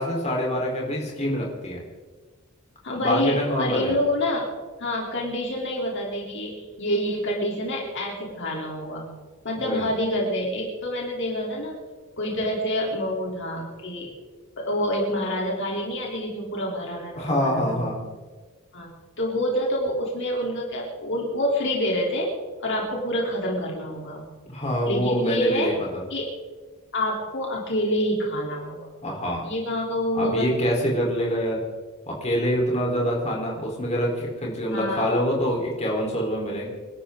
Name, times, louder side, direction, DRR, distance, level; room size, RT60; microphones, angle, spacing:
voice 1, 0.0-1.8 3.0-3.9 9.6-9.9 17.2-18.0 24.5-26.0 29.0-29.4 30.1-31.6 32.1-36.7, equal, 30° left, -2 dB, 4.2 m, -25 dB
voice 2, 2.8-4.5 4.8-9.1 9.4-11.8 12.2-14.1 14.6-17.9 18.7-22.3 22.6-24.3 24.8-25.7 26.1-26.3 26.9-28.8 29.4-30.5 34.7-35.1, equal, 60° left, -2 dB, 3.6 m, -27 dB
26.5 x 12.5 x 3.9 m, 1.4 s
head